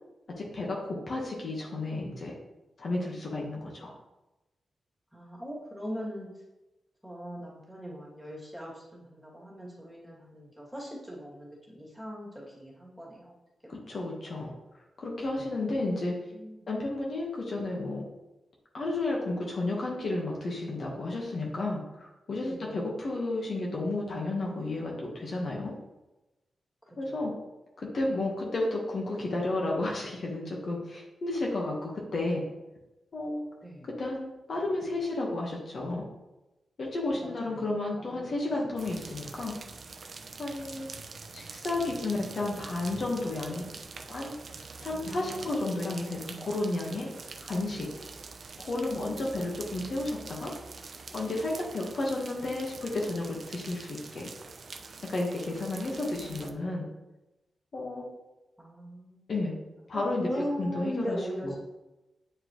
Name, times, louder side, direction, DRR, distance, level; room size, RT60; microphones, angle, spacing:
voice 1, 0.5-2.3 2.8-3.9 13.7-14.5 15.0-16.1 16.7-18.0 18.7-25.7 27.0-27.3 27.8-32.4 33.1-33.4 34.0-36.0 36.8-39.6 40.4-40.9 41.3-43.7 44.1-44.3 44.8-47.1 47.4-47.9 48.7-50.5 51.1-54.3 55.0-56.8 57.7-58.1 59.3-59.5 59.9-61.5, left 2 dB, 50° left, -2 dB, 1.2 m, -32 dB
voice 2, 5.1-6.3 7.0-13.3 13.9-14.0 16.3-16.6 22.4-22.8 27.1-27.2 33.6-33.9 37.2-37.6 38.0-38.3 44.9-45.5 55.5-56.4 58.6-59.3 59.9-61.6, equal, ahead, -5 dB, 2.3 m, -40 dB
sound 1, 38.8-56.5, right 4 dB, 50° right, 0.5 m, -45 dB
9.0 x 4.8 x 3.0 m, 1.0 s
wide cardioid pair, 120°, 0 cm